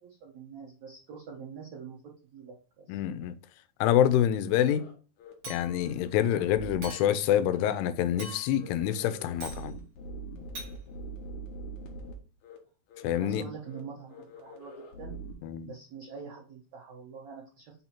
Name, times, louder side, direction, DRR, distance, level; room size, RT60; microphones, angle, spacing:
voice 1, 0.0-2.0 2.3-3.0 13.2-15.2 15.6-17.8, right 6 dB, 75° right, 1.7 m, -45 dB
voice 2, 2.9-3.4 3.8-4.9 5.5-9.8 13.0-13.5 15.4-15.7, left 10 dB, 90° left, 2.7 m, -26 dB
sound 1, 4.4-4.9 5.2-5.3 5.6-7.0 7.4-7.9 8.1-8.3 8.6-12.1 12.4-12.6 12.9-13.4 13.7-13.8 14.1-15.3, right 1 dB, 65° left, 2.1 m, -44 dB
Chink clink, 5.4-6.0 6.8-7.3 8.2-8.7 9.4-9.7 10.6-10.7, right 2 dB, 60° right, 1.5 m, -43 dB
6.1 x 2.9 x 5.6 m
omnidirectional pair, 4.7 m